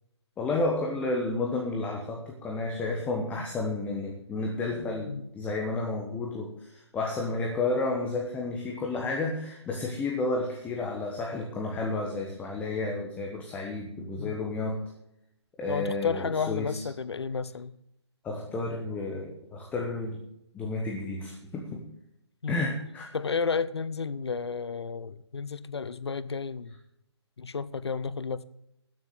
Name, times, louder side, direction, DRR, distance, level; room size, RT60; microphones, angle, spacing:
voice 1, 0.4-14.8 15.6-16.8 18.2-20.2 20.5-21.8 22.5-23.1, left 2 dB, 10° left, 1.2 m, -31 dB
voice 2, 15.7-17.8 22.4-22.6 23.1-26.7 27.4-28.4, left 5 dB, 65° left, 0.7 m, -32 dB
12.5 x 7.7 x 7.1 m
figure-of-eight pair, 140°, 15 cm